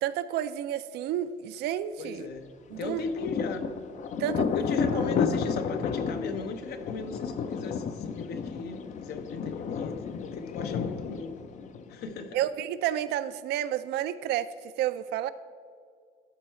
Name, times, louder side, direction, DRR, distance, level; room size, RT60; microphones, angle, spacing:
voice 1, 0.0-2.3 2.7-3.0 4.2-4.5 4.8-5.1 12.3-14.5 14.8-15.3, right 11 dB, 75° right, 13 dB, 0.4 m, -30 dB
voice 2, 2.0-2.5 2.8-3.7 4.5-11.4 11.9-12.4, left 4 dB, 70° left, 7 dB, 0.8 m, -37 dB
Thunder, 2.7-12.2, left 6 dB, 45° left, 0.5 m, -32 dB
12.0 x 4.6 x 4.4 m, 2.1 s
cardioid pair, 110°, 17 cm